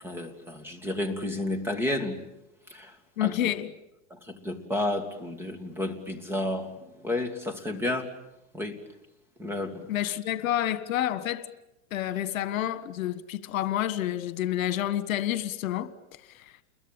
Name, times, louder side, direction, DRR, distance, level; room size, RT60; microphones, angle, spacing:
voice 1, 0.0-2.2 2.7-2.9 3.2-3.3 4.1-6.7 7.0-8.1 8.5-8.8 9.4-9.8, left 1 dB, 5° right, 2.2 m, -31 dB
voice 2, 3.2-3.7 9.9-11.5 11.9-15.9 16.3-16.4, left 12 dB, 70° left, 1.7 m, -29 dB
29.5 x 22.5 x 9.0 m
supercardioid pair, 150°, 41 cm